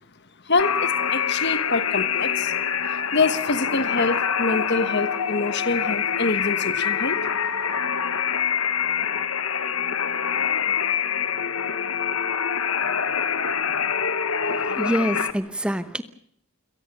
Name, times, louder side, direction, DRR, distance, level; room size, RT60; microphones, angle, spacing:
voice 1, 0.5-2.5 3.1-7.2, left 3 dB, 50° left, 1.3 m, -25 dB
sound 1, 0.6-15.3, left 7 dB, 70° left, 1.2 m, -25 dB
voice 2, 14.4-16.0, equal, 5° right, 0.9 m, -26 dB
29.0 x 18.0 x 6.8 m
head